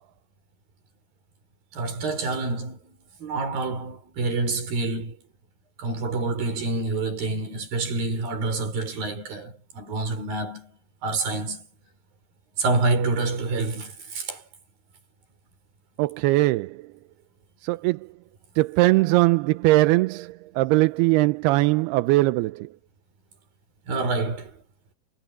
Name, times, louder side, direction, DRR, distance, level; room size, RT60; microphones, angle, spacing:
voice 1, 1.7-5.2 5.8-11.7 12.6-14.4 23.9-24.6, right 3 dB, 60° right, 6.7 m, -27 dB
voice 2, 16.0-16.8 17.6-18.1 18.6-22.7, right 20 dB, 80° right, 2.6 m, -21 dB
omnidirectional pair, 4.7 m